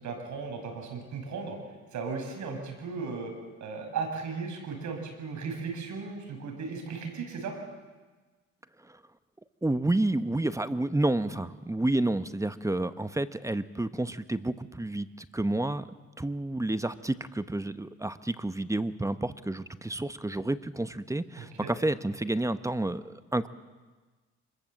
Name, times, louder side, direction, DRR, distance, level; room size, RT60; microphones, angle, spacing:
voice 1, 0.0-1.6 1.9-3.3 3.6-7.5 21.4-21.7, right 5 dB, 70° right, 4 dB, 6.0 m, -36 dB
voice 2, 9.6-15.9 16.2-23.5, right 2 dB, 10° right, 12 dB, 1.0 m, -30 dB
25.5 x 21.0 x 7.8 m, 1.3 s
cardioid pair, 90°, 30 cm